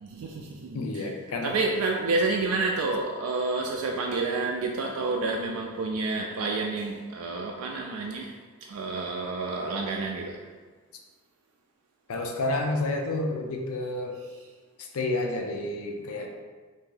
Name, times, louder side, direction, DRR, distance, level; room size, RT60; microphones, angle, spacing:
voice 1, 0.0-1.1 1.4-10.4, right 3 dB, 90° right, 0 dB, 0.3 m, -29 dB
voice 2, 0.7-1.6 12.1-14.2 14.8-16.3, left 2 dB, 85° left, 2 dB, 0.5 m, -30 dB
2.8 x 2.6 x 3.8 m, 1.4 s
head